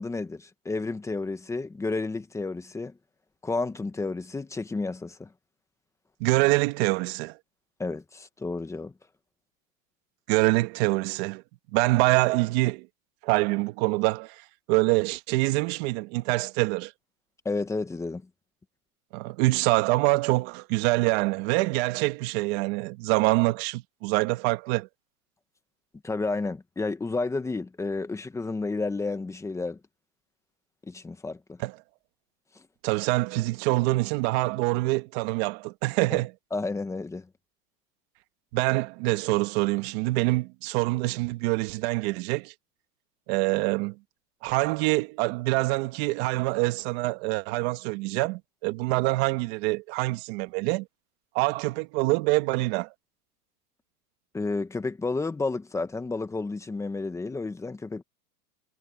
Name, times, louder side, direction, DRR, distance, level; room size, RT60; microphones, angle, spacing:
voice 1, 0.0-3.0 3.4-5.3 7.8-8.9 17.4-18.3 26.0-29.8 30.9-31.6 36.1-36.2 36.5-37.3 54.3-58.0, left 3 dB, 5° left, 1.1 m, -31 dB
voice 2, 6.2-7.4 10.3-11.4 11.7-12.9 13.2-14.4 14.7-16.9 19.1-24.9 31.6-31.7 32.8-36.3 38.5-42.5 43.3-44.0 44.4-50.9 51.3-52.9, right 22 dB, 45° right, 1.7 m, -25 dB
supercardioid pair, 150°, 46 cm